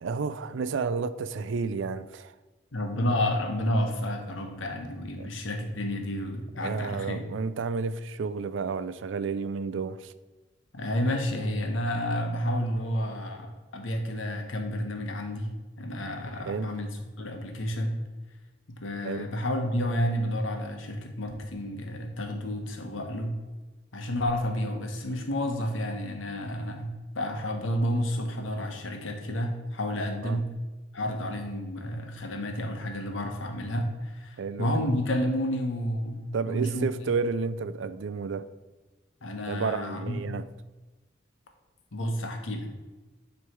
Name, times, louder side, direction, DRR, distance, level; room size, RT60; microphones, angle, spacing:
voice 1, 0.0-2.3 5.2-5.3 6.6-10.1 16.5-16.7 19.0-19.3 30.2-30.4 34.4-34.7 36.3-38.5 39.5-40.5, right 5 dB, 75° right, 14 dB, 0.4 m, -31 dB
voice 2, 2.7-7.2 10.7-15.5 15.8-18.0 18.7-23.4 23.9-30.5 30.9-36.9 39.2-40.3 41.9-42.7, equal, 85° left, 3 dB, 1.1 m, -30 dB
9.5 x 3.2 x 4.5 m, 1.2 s
head